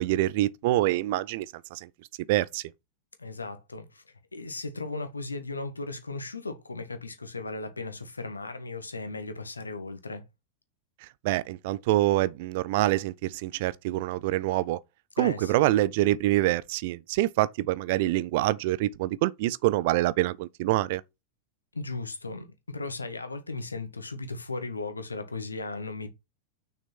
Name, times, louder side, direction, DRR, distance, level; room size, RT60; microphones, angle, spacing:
voice 1, 0.0-1.9 2.3-2.7 11.2-14.8 15.2-21.0, right 16 dB, 50° right, 0.5 m, -26 dB
voice 2, 3.2-4.0 4.3-10.2 15.2-15.7 21.7-26.1, left 3 dB, 80° left, 1.7 m, -36 dB
6.5 x 6.3 x 6.0 m
figure-of-eight pair, 90°, 0 cm